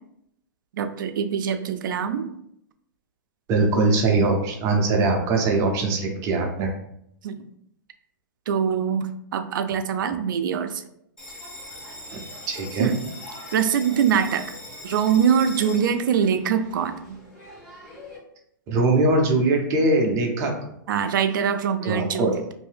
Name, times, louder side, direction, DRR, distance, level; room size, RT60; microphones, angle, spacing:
voice 1, 0.8-2.4 7.2-7.5 8.5-10.8 12.8-13.0 13.5-14.6 14.8-17.2 20.9-22.3, right 7 dB, 70° right, 9 dB, 0.4 m, -23 dB
voice 2, 3.5-6.7 12.1-12.2 12.5-12.9 18.7-20.5 21.8-22.4, right 2 dB, 30° right, 2 dB, 0.6 m, -21 dB
Bell, 11.2-18.2, left 1 dB, 5° left, 1.0 m, -41 dB
2.7 x 2.6 x 3.3 m, 0.75 s
hypercardioid pair, 150°, 11 cm